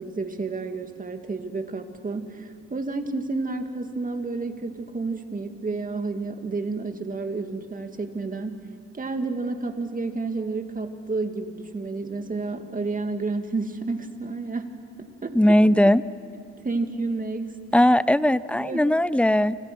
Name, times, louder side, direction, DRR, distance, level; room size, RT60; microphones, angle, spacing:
voice 1, 0.0-8.6 8.9-14.7 15.0-15.4 16.6-17.6 18.5-18.9, right 3 dB, 25° right, 6 dB, 2.3 m, -30 dB
voice 2, 15.3-16.0 17.7-19.6, left 1 dB, 5° left, 17 dB, 0.6 m, -18 dB
29.5 x 26.0 x 6.2 m, 2.5 s
cardioid pair, 90°, 30 cm